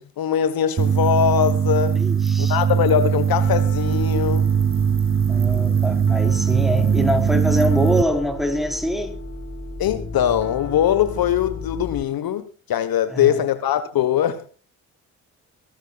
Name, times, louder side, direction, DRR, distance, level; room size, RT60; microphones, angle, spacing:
voice 1, 0.0-2.0 2.4-4.5 9.8-14.5, left 9 dB, 60° left, 1.4 m, -21 dB
sound 1, 0.8-8.0, right 7 dB, 30° right, 1.0 m, -20 dB
voice 2, 2.0-2.6 5.3-9.2 13.1-13.4, equal, ahead, 4.1 m, -24 dB
Piano, 3.4-12.0, left 3 dB, 30° left, 3.3 m, -34 dB
23.0 x 14.0 x 2.4 m
hypercardioid pair, 40°, 40 cm